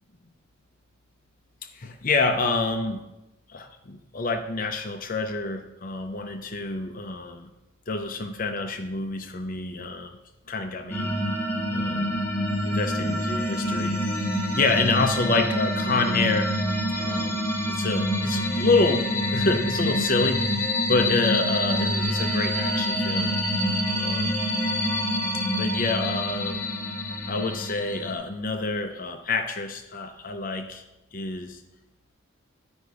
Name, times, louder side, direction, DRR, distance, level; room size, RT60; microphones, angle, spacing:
voice 1, 1.6-3.1 3.5-7.5 7.9-10.2 10.5-11.1 11.7-12.2 12.6-14.0 14.5-16.6 17.0-23.4 23.9-24.4 25.6-26.6 27.3-30.8 31.1-31.6, left 3 dB, 40° left, 6 dB, 0.6 m, -27 dB
sound 1, 10.9-28.1, equal, 10° left, 1.0 m, -26 dB
10.0 x 5.2 x 4.8 m, 0.96 s
head